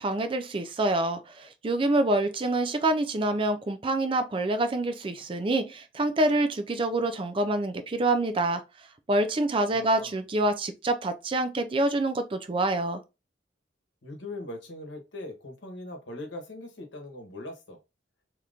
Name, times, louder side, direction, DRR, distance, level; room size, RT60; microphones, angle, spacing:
voice 1, 0.0-8.6 9.1-13.0, right 2 dB, 30° right, 0.4 m, -26 dB
voice 2, 9.7-10.2 14.0-17.8, left 2 dB, 90° left, 1.0 m, -40 dB
2.9 x 2.5 x 3.4 m
head